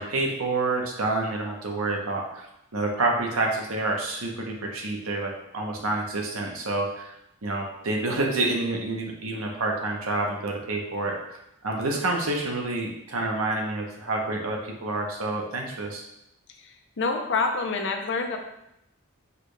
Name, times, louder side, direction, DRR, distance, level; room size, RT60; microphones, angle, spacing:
voice 1, 0.0-7.1 7.4-11.4 11.6-16.0, right 2 dB, 80° right, 0 dB, 0.9 m, -28 dB
voice 2, 16.6-18.4, left 4 dB, 60° left, 4 dB, 0.6 m, -27 dB
4.7 x 2.3 x 4.8 m, 0.84 s
head